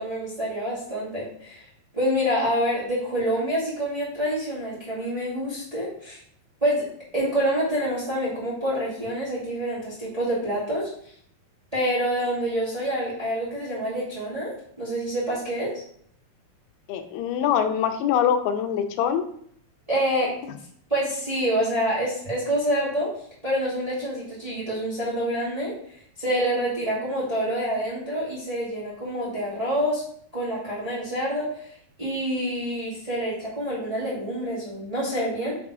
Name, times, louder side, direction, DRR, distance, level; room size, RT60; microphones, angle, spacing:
voice 1, 0.0-1.6 1.9-6.2 6.6-6.9 7.1-10.9 11.7-15.7 19.9-20.3 20.9-23.1 23.4-25.7 26.2-30.0 30.3-31.7 32.0-35.6, equal, 15° right, -8 dB, 1.8 m, -27 dB
voice 2, 16.9-19.3, left 8 dB, 90° left, 7 dB, 2.6 m, -23 dB
7.2 x 3.6 x 4.8 m, 0.64 s
omnidirectional pair, 4.3 m